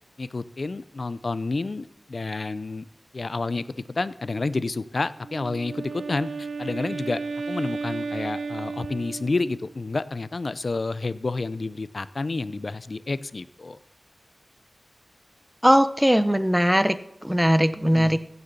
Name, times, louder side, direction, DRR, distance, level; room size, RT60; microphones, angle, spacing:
voice 1, 0.2-2.9 3.1-7.2 7.5-13.8 17.8-18.2, left 3 dB, 55° left, 16 dB, 0.5 m, -30 dB
Wind instrument woodwind instrument, 5.2-9.7, right 4 dB, 80° right, 0.7 m, -33 dB
voice 2, 15.6-18.2, equal, 5° right, 13 dB, 0.7 m, -20 dB
15.5 x 6.9 x 6.8 m, 0.81 s
wide cardioid pair, 75°, 0 cm